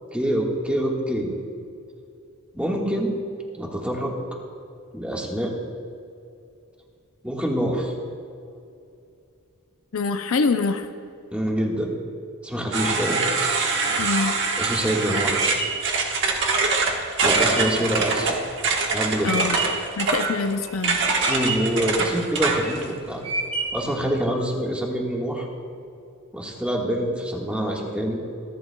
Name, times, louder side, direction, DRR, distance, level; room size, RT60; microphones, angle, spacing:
voice 1, 0.1-1.3 2.5-3.1 3.5-4.1 4.9-5.5 7.2-7.9 11.3-11.9 12.4-13.2 14.6-15.4 17.2-18.3 18.9-19.5 21.3-23.2 23.7-25.5 26.3-28.2, equal, 5° right, -2 dB, 1.5 m, -25 dB
voice 2, 9.9-10.9 14.0-14.3 19.2-19.6 20.0-21.0, left 4 dB, 65° left, 8 dB, 0.6 m, -24 dB
sound 1, 12.7-22.8, right 4 dB, 55° right, 1.3 m, -24 dB
sound 2, 14.5-19.9 20.3-20.9 21.2-21.8 22.4-22.8 23.2-23.9, right 3 dB, 25° right, 2.5 m, -29 dB
25.5 x 11.0 x 2.3 m, 2.5 s
head